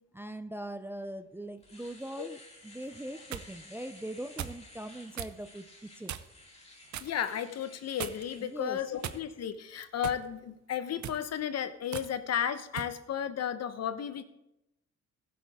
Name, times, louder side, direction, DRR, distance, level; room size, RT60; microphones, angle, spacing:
voice 1, 0.0-6.2 8.4-8.8, right 1 dB, 5° right, 9 dB, 0.5 m, -41 dB
Domestic sounds home sounds, 1.0-1.1 1.4-9.2, left 2 dB, 20° left, 2.7 m, -55 dB
sound 1, 2.9-3.5 4.4-4.6 5.1-5.4 6.1-6.4 6.9-7.2 8.0-8.4 9.0-9.5 10.0-10.3 10.9-11.2 11.9-12.1 12.8-13.0, right 10 dB, 70° right, 0.8 m, -39 dB
voice 2, 7.0-14.2, left 9 dB, 55° left, 12 dB, 0.9 m, -34 dB
15.5 x 8.6 x 3.6 m, 0.88 s
cardioid pair, 90°, 30 cm